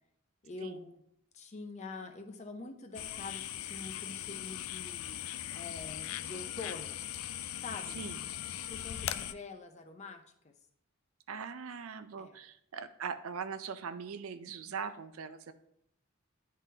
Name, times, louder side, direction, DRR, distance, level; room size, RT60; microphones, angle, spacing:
voice 1, 0.4-1.0 1.3-7.0 7.6-8.0 8.7-10.5 12.2-12.4, left 3 dB, 35° left, 5 dB, 0.6 m, -46 dB
sound 1, 2.9-9.3, left 12 dB, 75° left, 0.3 m, -40 dB
voice 2, 8.0-8.3 11.3-15.5, right 6 dB, 80° right, 11 dB, 0.5 m, -41 dB
10.5 x 3.7 x 2.8 m, 0.74 s
head